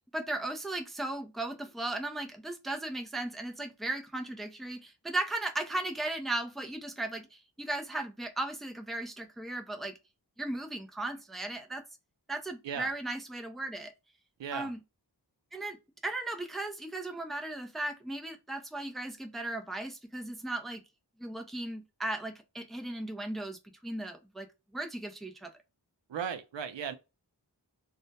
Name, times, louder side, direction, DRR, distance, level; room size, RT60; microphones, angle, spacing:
voice 1, 0.1-9.9 10.4-11.8 12.3-13.9 14.5-14.8 15.5-15.8 16.0-20.8 21.2-24.5 24.7-25.5, right 2 dB, ahead, 0.4 m, -36 dB
voice 2, 14.4-14.7 26.1-26.9, right 7 dB, 85° right, 0.5 m, -36 dB
2.2 x 2.0 x 2.6 m
wide cardioid pair, 60°, 43 cm